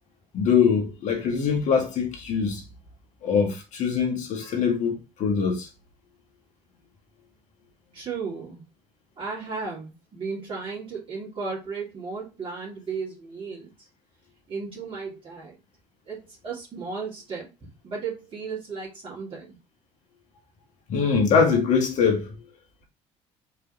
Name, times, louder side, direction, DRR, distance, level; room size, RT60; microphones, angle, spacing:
voice 1, 0.3-2.6 3.2-5.7 20.9-22.3, left 6 dB, 60° left, 1.8 m, -23 dB
voice 2, 7.9-8.6 9.2-13.9 14.5-15.6 16.0-19.6, right 4 dB, 40° right, 2.4 m, -35 dB
4.8 x 3.5 x 3.0 m
supercardioid pair, 75°, 14 cm